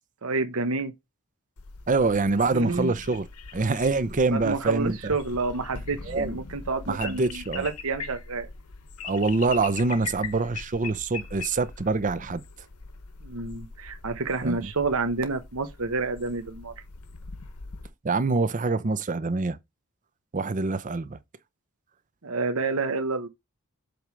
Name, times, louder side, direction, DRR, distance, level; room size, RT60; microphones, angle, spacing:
voice 1, 0.2-0.9 2.5-3.0 4.3-8.5 13.2-16.7 22.2-23.3, right 3 dB, 65° right, 1.0 m, -29 dB
sound 1, 1.6-17.9, left 4 dB, 90° left, 1.0 m, -41 dB
voice 2, 1.9-3.3 3.5-5.1 6.1-6.4 6.9-7.7 9.0-12.4 14.4-14.7 18.0-19.6 20.3-21.2, right 3 dB, 35° right, 0.6 m, -25 dB
7.8 x 3.3 x 5.1 m
head